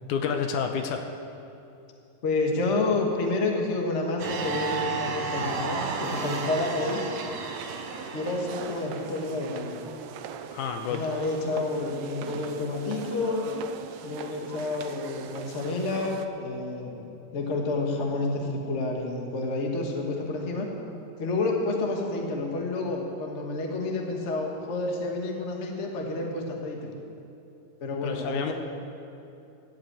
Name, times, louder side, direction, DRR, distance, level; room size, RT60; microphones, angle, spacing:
voice 1, 0.1-1.1 10.5-11.0 28.0-28.5, left 6 dB, 75° left, 5 dB, 2.0 m, -29 dB
voice 2, 2.2-7.0 8.1-9.8 10.9-13.5 14.0-20.7 21.2-26.9 27.8-28.5, left 2 dB, 60° left, 1 dB, 0.7 m, -29 dB
sound 1, 4.2-8.9, right 4 dB, 60° right, 1.8 m, -32 dB
sound 2, 5.8-16.3, right 7 dB, 85° right, 1.5 m, -41 dB
13.0 x 8.4 x 8.8 m, 2.7 s
omnidirectional pair, 4.0 m